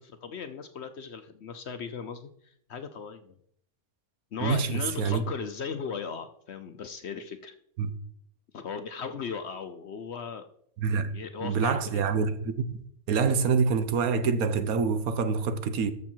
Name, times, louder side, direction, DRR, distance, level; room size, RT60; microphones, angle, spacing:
voice 1, 0.0-3.3 4.3-7.5 8.5-10.5 11.0-12.0, left 6 dB, 55° left, 0.8 m, -37 dB
voice 2, 4.4-5.2 7.8-7.9 10.8-11.1 11.4-12.8 13.1-15.9, right 5 dB, 75° right, 1.3 m, -26 dB
13.5 x 6.5 x 4.5 m
omnidirectional pair, 1.6 m